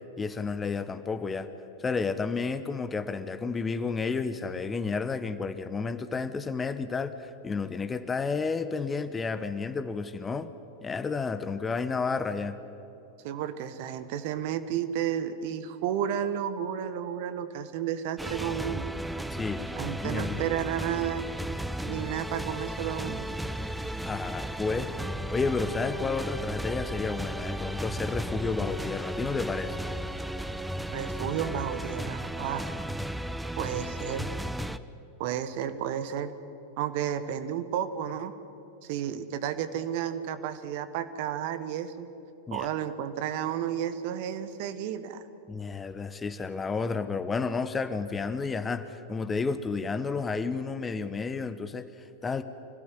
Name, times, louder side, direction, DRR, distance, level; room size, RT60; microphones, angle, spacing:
voice 1, 0.2-1.5 1.8-10.5 10.8-12.6 19.3-19.6 20.0-20.4 24.0-24.9 25.3-29.8 42.5-42.7 45.5-52.4, left 4 dB, 15° left, 12 dB, 1.0 m, -31 dB
voice 2, 13.2-18.9 19.7-21.2 21.9-23.3 30.9-32.7 33.5-34.3 35.2-36.3 36.8-38.3 38.8-42.1 42.5-45.2, right 9 dB, 50° right, 11 dB, 1.4 m, -32 dB
sound 1, 18.2-34.8, right 1 dB, 5° right, 0.7 m, -35 dB
26.0 x 16.5 x 9.8 m, 3.0 s
figure-of-eight pair, 90°, 0 cm